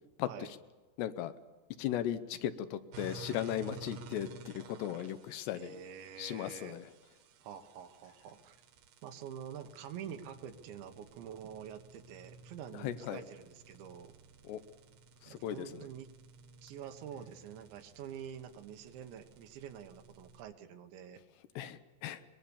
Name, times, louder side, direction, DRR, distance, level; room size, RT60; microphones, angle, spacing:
voice 1, 0.2-0.6 1.0-1.3 1.8-5.8 6.2-6.8 12.7-13.2 14.4-14.6 15.2-15.9 21.6-22.2, left 11 dB, 80° left, 12 dB, 2.9 m, -37 dB
sound 1, 2.9-20.4, right 3 dB, 65° right, 3.0 m, -54 dB
voice 2, 5.6-6.8 7.4-8.6 9.0-14.1 15.3-16.1 16.6-21.2, right 8 dB, 85° right, 7 dB, 3.6 m, -47 dB
23.5 x 21.0 x 7.1 m, 1.3 s
omnidirectional pair, 5.1 m